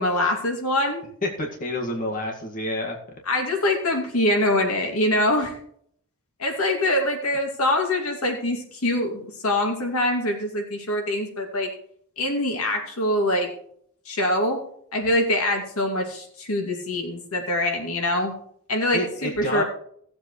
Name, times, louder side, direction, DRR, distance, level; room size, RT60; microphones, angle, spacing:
voice 1, 0.0-1.0 3.3-5.6 6.4-11.7 12.2-13.5 14.1-14.6 14.9-18.3 18.7-19.6, left 1 dB, 80° left, 2 dB, 2.5 m, -24 dB
voice 2, 1.2-3.2 18.9-19.6, left 1 dB, 40° left, 0 dB, 2.0 m, -29 dB
17.5 x 7.8 x 3.2 m, 0.65 s
head